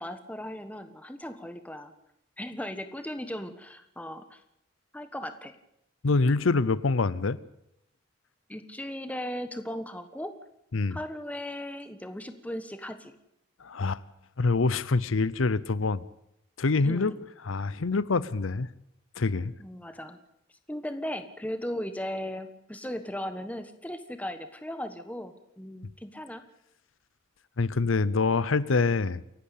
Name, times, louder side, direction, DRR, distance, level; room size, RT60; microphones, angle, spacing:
voice 1, 0.0-1.9 2.4-4.4 4.9-5.5 8.5-10.3 10.9-13.1 16.8-17.2 19.6-20.2 20.7-26.4, left 1 dB, 5° left, 9 dB, 1.3 m, -37 dB
voice 2, 6.0-7.4 10.7-11.0 13.6-14.0 14.4-16.0 16.6-17.1 17.4-18.7 19.2-19.5 27.6-29.2, left 3 dB, 90° left, 18 dB, 0.7 m, -25 dB
28.5 x 11.5 x 8.4 m, 0.80 s
head